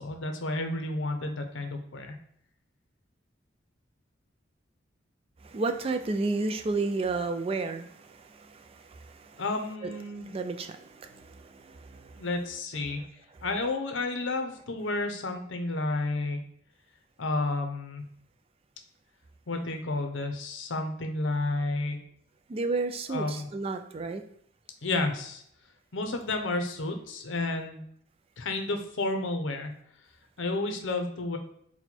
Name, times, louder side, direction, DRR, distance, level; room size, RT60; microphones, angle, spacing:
voice 1, 0.0-2.2 9.4-10.3 12.1-13.0 13.4-16.4 17.2-18.0 19.5-22.0 23.1-23.5 24.8-25.4 25.9-27.8 28.4-29.7 30.4-31.4, left 2 dB, 80° left, 5 dB, 0.7 m, -31 dB
voice 2, 5.4-9.4 9.8-12.3 22.5-24.2, right 3 dB, 30° right, 7 dB, 0.3 m, -32 dB
4.1 x 2.2 x 4.3 m, 0.69 s
head